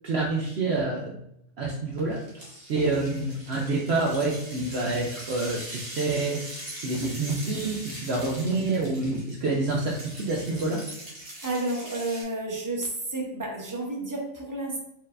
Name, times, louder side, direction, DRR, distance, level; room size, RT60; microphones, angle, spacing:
voice 1, 0.0-1.1 1.6-10.8, right 3 dB, 60° right, -2 dB, 0.7 m, -28 dB
sound 1, 2.1-12.2, right 1 dB, 45° right, 1.5 m, -41 dB
voice 2, 11.4-14.8, right 2 dB, 20° right, -1 dB, 0.5 m, -31 dB
4.3 x 3.9 x 2.4 m, 0.78 s
omnidirectional pair, 1.5 m